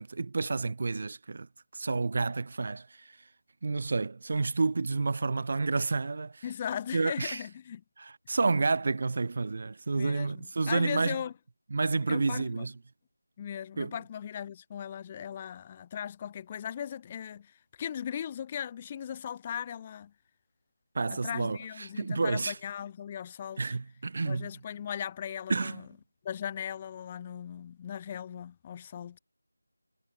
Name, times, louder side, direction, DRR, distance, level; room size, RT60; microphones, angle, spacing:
voice 1, 0.0-3.2 3.6-6.4 6.9-7.4 8.0-11.2 11.7-12.7 13.8-14.0 20.9-22.6 23.6-24.5 25.5-25.8, right 3 dB, 40° right, 1.0 m, -30 dB
voice 2, 6.4-7.8 9.9-11.3 12.1-12.7 13.4-20.1 21.1-23.7 24.3-25.8 26.2-29.2, left 9 dB, 20° left, 0.8 m, -38 dB
figure-of-eight pair, 170°, 0 cm